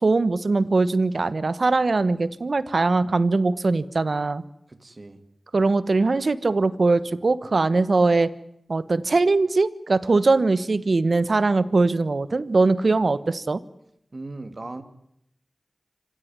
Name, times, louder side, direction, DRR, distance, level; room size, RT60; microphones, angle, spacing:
voice 1, 0.0-4.4 5.5-8.3 8.7-13.6, right 3 dB, 70° right, 16 dB, 1.2 m, -21 dB
voice 2, 4.7-5.2 14.1-14.8, right 2 dB, 50° right, 10 dB, 2.6 m, -37 dB
26.0 x 16.5 x 9.7 m, 0.77 s
cardioid pair, 45°, 0 cm